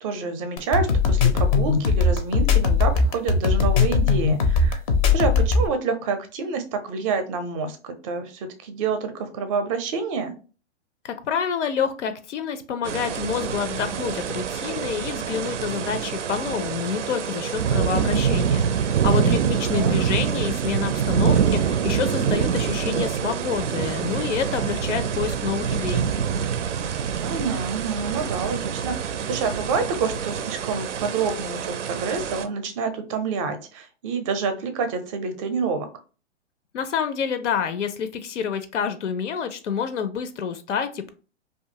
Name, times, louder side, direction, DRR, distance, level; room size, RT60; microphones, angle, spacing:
voice 1, 0.0-4.8 5.1-10.3 19.7-19.9 27.2-35.9, right 5 dB, 30° right, 8 dB, 0.5 m, -28 dB
sound 1, 0.6-5.7, left 4 dB, 30° left, 0.4 m, -19 dB
voice 2, 11.0-26.0 36.7-41.1, left 7 dB, 85° left, 11 dB, 0.5 m, -28 dB
sound 2, 12.8-32.5, right 7 dB, 85° right, 0.5 m, -25 dB
2.5 x 2.3 x 2.7 m, 0.35 s
hypercardioid pair, 125°, 35 cm